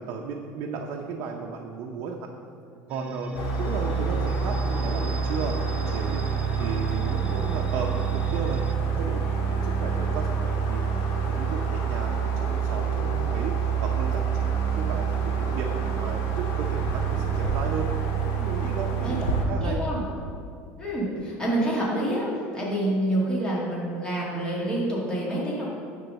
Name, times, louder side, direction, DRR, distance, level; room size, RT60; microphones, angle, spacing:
voice 1, 0.0-2.3 2.9-8.6 8.9-19.2 19.5-19.8, right 5 dB, 55° right, 1 dB, 0.7 m, -35 dB
sound 1, 2.9-8.7, left 1 dB, 20° right, 0.4 m, -38 dB
sound 2, 3.3-19.4, right 6 dB, 55° left, 1.6 m, -27 dB
voice 2, 19.6-20.0 20.8-22.3 22.5-25.7, right 1 dB, 15° left, -6 dB, 1.9 m, -27 dB
9.9 x 3.8 x 6.4 m, 2.4 s
cardioid pair, 150°, 6 cm